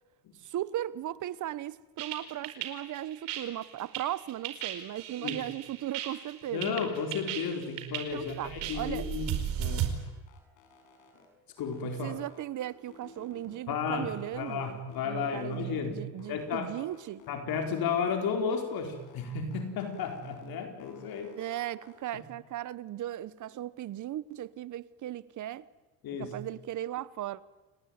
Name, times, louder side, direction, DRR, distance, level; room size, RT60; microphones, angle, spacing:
voice 1, 0.4-6.8 8.1-9.1 12.0-17.2 21.4-25.7 26.2-27.4, right 13 dB, 45° right, 1.1 m, -37 dB
sound 1, 2.0-9.9, right 11 dB, 70° right, 4.9 m, -35 dB
sound 2, 3.8-4.3 4.6-6.6 6.9-9.0 9.3-11.3 11.6-13.6 13.9-15.9 16.2-18.2 18.5-20.5 20.8-21.9, left 4 dB, 80° left, 6.9 m, -55 dB
voice 2, 6.5-9.9 11.6-12.2 13.7-16.0 16.3-16.7 17.3-21.4 22.1-22.2 26.0-26.3, left 5 dB, 55° left, 4.5 m, -33 dB
29.5 x 19.5 x 9.5 m
cardioid pair, 125°, 43 cm